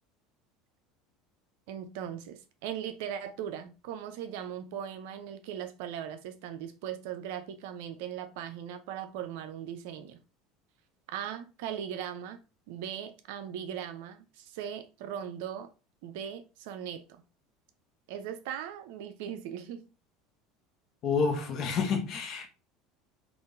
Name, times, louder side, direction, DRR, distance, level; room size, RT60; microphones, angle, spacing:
voice 1, 1.7-10.2 11.1-12.4 12.7-15.7 16.0-17.2 18.1-19.9, right 9 dB, 75° right, 0.5 m, -39 dB
voice 2, 21.0-22.5, left 5 dB, 50° left, 0.8 m, -29 dB
3.6 x 2.4 x 2.5 m
supercardioid pair, 95°, 0 cm